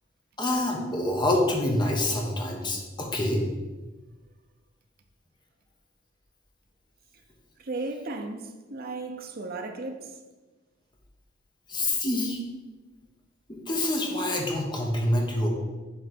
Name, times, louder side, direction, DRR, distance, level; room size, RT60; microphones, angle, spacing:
voice 1, 0.4-3.4 11.7-12.4 13.5-15.5, left 1 dB, 25° left, 1.2 m, -26 dB
voice 2, 7.6-10.2, right 3 dB, 50° right, 0.8 m, -35 dB
7.9 x 3.4 x 6.0 m
head